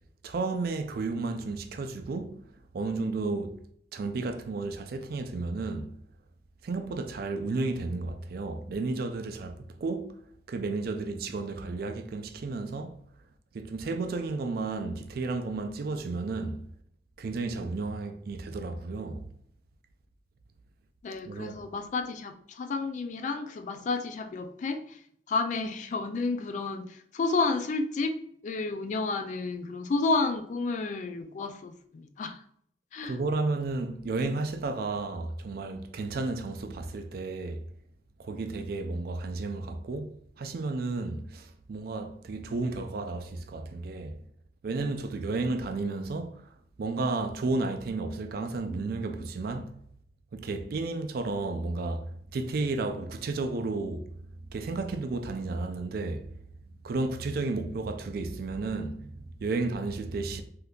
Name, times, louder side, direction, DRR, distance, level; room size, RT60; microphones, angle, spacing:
voice 1, 0.2-2.4 2.7-3.6 3.9-5.9 6.6-10.2 10.5-13.0 13.5-16.6 17.2-19.3 21.3-21.6 33.0-37.7 38.2-44.2 44.6-46.5 46.8-49.8 50.3-54.1 54.5-56.3 56.8-60.4, right 3 dB, 55° right, 0.4 m, -32 dB
voice 2, 21.0-24.8 25.3-26.9 27.1-28.2 28.4-32.3 32.9-33.2, left 3 dB, 45° left, 0.3 m, -31 dB
3.5 x 2.7 x 2.3 m
head